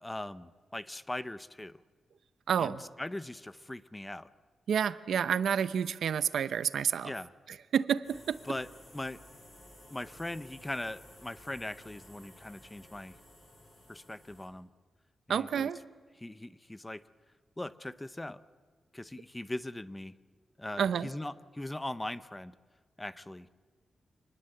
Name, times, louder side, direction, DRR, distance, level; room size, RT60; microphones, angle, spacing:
voice 1, 0.0-1.8 2.6-4.3 7.0-7.3 8.4-8.7 8.9-9.2 9.9-13.2 13.9-14.7 15.3-15.7 16.2-17.0 17.6-18.4 18.9-20.1 20.6-22.5 23.0-23.5, left 1 dB, 10° left, 15 dB, 0.6 m, -40 dB
voice 2, 2.5-2.8 4.7-7.1 7.7-8.4 15.3-15.8 20.8-21.1, right 8 dB, 85° right, 14 dB, 0.8 m, -29 dB
sound 1, 8.0-14.5, left 1 dB, 35° left, 6.9 m, -55 dB
25.5 x 20.0 x 7.9 m, 1.5 s
wide cardioid pair, 155°, 0 cm